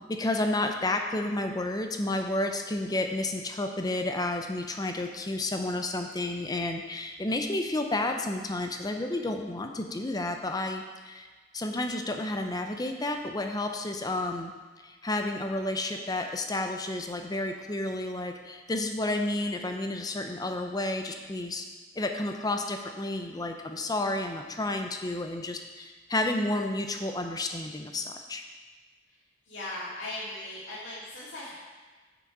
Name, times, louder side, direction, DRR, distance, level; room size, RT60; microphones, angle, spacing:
voice 1, 0.0-11.3 11.5-14.5 14.8-21.6 22.0-28.4, left 2 dB, 20° left, 5 dB, 0.6 m, -31 dB
voice 2, 29.5-31.5, left 2 dB, 65° left, -9 dB, 2.5 m, -38 dB
6.9 x 6.1 x 4.7 m, 1.4 s
head